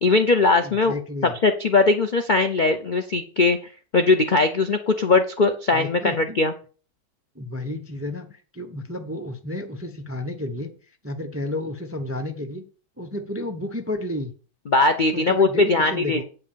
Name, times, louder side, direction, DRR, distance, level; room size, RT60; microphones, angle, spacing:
voice 1, 0.0-0.9 1.4-6.5 14.7-16.2, left 3 dB, 65° left, 7 dB, 0.4 m, -20 dB
voice 2, 0.6-1.4 5.7-6.4 7.3-10.7 11.0-12.6 13.0-14.3 15.1-16.2, left 1 dB, 15° right, 6 dB, 0.4 m, -31 dB
8.3 x 5.9 x 6.8 m, 0.40 s
omnidirectional pair, 1.9 m